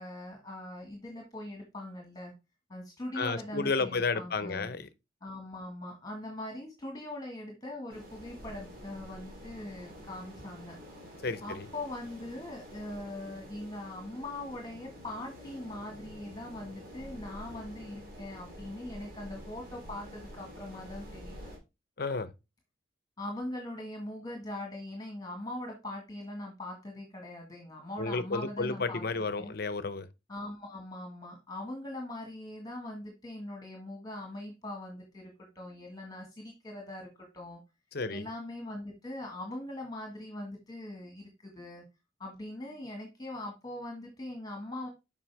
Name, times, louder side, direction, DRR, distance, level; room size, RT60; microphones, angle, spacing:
voice 1, 0.0-2.3 2.7-4.7 5.2-10.8 11.4-21.4 23.2-29.0 29.4-29.6 30.3-37.1 37.3-37.6 38.1-41.8 42.2-44.9, left 1 dB, 20° left, 1.6 m, -41 dB
voice 2, 3.1-4.9 11.2-11.7 22.0-22.3 28.0-30.1 37.9-38.3, left 4 dB, 55° left, 0.8 m, -32 dB
sound 1, 7.9-21.6, equal, 50° right, 3.3 m, -48 dB
7.6 x 5.4 x 3.4 m
head